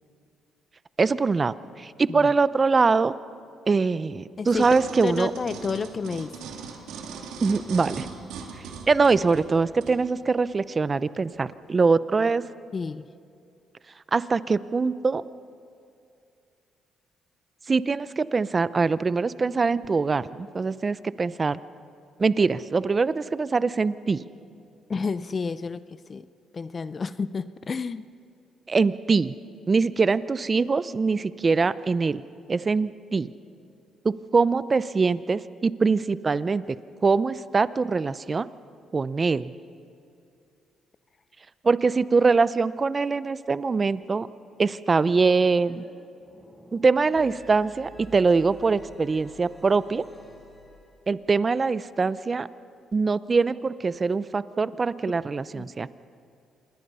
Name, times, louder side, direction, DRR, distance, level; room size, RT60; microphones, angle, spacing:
voice 1, 1.0-3.1 3.7-5.3 7.4-8.1 8.9-12.4 14.1-15.2 17.7-21.6 22.2-24.2 28.7-29.3 29.7-32.2 32.5-33.3 34.0-36.6 37.0-38.5 38.9-39.5 41.6-44.3 44.6-45.8 46.7-50.0 51.1-52.5 52.9-55.9, right 4 dB, 30° right, 16 dB, 0.6 m, -23 dB
voice 2, 4.4-4.8 5.0-6.4 12.7-13.0 24.9-26.2 26.5-28.0 55.1-55.2 55.5-55.7, left 5 dB, 40° left, 14 dB, 0.6 m, -30 dB
sound 1, 4.5-10.0 10.6-10.7, right 6 dB, 90° right, 2.4 m, -39 dB
sound 2, 45.5-45.9 46.1-51.1, right 1 dB, 5° left, 6.8 m, -50 dB
27.0 x 21.5 x 5.6 m, 2.5 s
cardioid pair, 90°, 0 cm